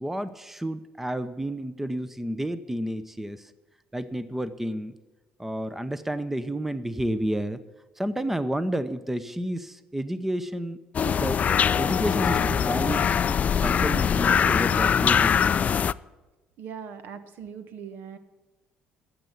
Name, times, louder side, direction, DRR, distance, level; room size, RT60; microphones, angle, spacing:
voice 1, 0.0-3.5 3.9-4.9 5.4-7.6 8.0-10.8 11.0-11.4 11.8-13.1 13.6-15.6, right 1 dB, 10° right, 13 dB, 0.8 m, -30 dB
sound 1, 10.9-15.9, left 7 dB, 40° left, 0.4 m, -22 dB
voice 2, 16.6-18.2, right 7 dB, 65° right, 11 dB, 1.4 m, -40 dB
13.0 x 7.8 x 8.3 m, 1.2 s
supercardioid pair, 75°, 4 cm